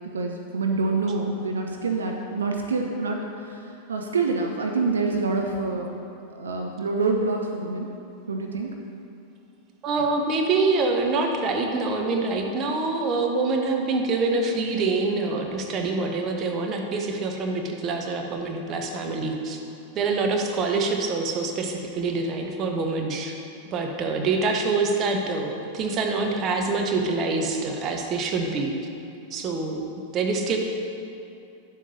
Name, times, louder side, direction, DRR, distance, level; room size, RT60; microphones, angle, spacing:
voice 1, 0.0-6.0 6.3-7.9 8.3-8.7 10.0-10.1, right 3 dB, 70° right, 2 dB, 0.5 m, -26 dB
voice 2, 9.8-19.6 19.9-23.4 23.7-28.7 29.3-29.9 30.1-30.6, right 3 dB, 30° right, 3 dB, 0.8 m, -25 dB
9.9 x 7.3 x 2.7 m, 2.6 s
figure-of-eight pair, 90°, 0 cm